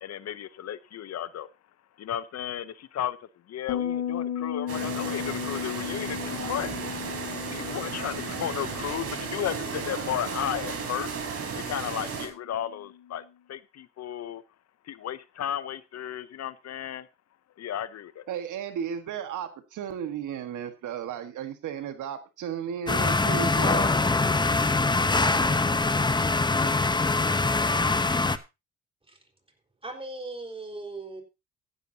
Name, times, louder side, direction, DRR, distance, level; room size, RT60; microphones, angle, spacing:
voice 1, 0.0-1.5 2.0-3.2 3.5-6.8 7.5-11.1 11.5-13.2 13.5-14.4 14.9-17.1 17.6-18.2, left 10 dB, 60° left, 16 dB, 0.8 m, -34 dB
Bass guitar, 3.7-13.0, left 9 dB, 80° left, 2.5 m, -36 dB
sound 1, 4.7-12.3, right 5 dB, 50° right, 4.0 m, -34 dB
voice 2, 18.3-23.9, right 8 dB, 80° right, 9 dB, 1.6 m, -34 dB
sound 2, 22.9-28.4, left 3 dB, 15° left, 0.8 m, -23 dB
voice 3, 29.8-31.2, right 2 dB, 20° right, 3 dB, 4.3 m, -38 dB
15.0 x 11.0 x 2.8 m, 0.26 s
cardioid pair, 90°, 30 cm